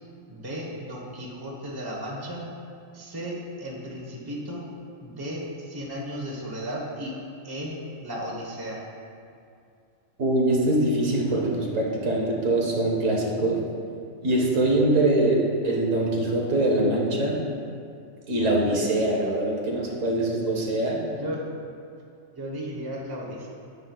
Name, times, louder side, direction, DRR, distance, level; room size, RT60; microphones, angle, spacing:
voice 1, 0.3-2.4 2.9-4.6 5.0-7.2 7.4-8.8 11.1-11.4 18.6-18.8 21.1-21.4 22.3-23.5, equal, 20° right, -3 dB, 1.0 m, -35 dB
voice 2, 10.2-13.6 14.2-17.4 18.3-21.0, right 1 dB, 70° right, -2 dB, 1.5 m, -23 dB
9.7 x 8.4 x 2.3 m, 2.4 s
omnidirectional pair, 1.4 m